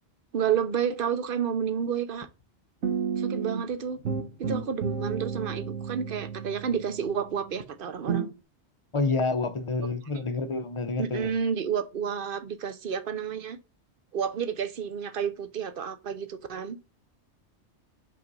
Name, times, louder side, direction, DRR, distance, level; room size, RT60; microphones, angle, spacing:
voice 1, 0.3-2.3 3.2-4.0 4.4-8.3 11.0-13.6 14.1-16.8, right 7 dB, 55° right, 0.8 m, -30 dB
sound 1, 2.8-3.7 4.1-7.6 8.1-8.3, right 6 dB, 80° right, 1.3 m, -32 dB
voice 2, 8.9-11.3, left 3 dB, 35° left, 0.6 m, -28 dB
5.4 x 4.0 x 5.4 m
omnidirectional pair, 1.2 m